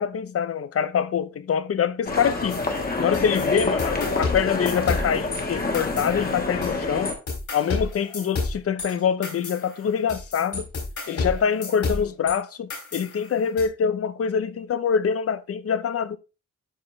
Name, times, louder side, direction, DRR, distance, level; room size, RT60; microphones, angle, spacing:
voice 1, 0.0-2.6 3.0-7.1 7.5-10.7 11.1-16.2, left 7 dB, 50° left, 0.6 m, -25 dB
sound 1, 2.1-7.1, left 3 dB, 30° left, 1.4 m, -27 dB
sound 2, 2.5-5.4 5.7-6.8 7.0-12.3 12.7-13.6, left 3 dB, 65° left, 3.9 m, -31 dB
12.0 x 4.3 x 3.1 m
wide cardioid pair, 165°, 31 cm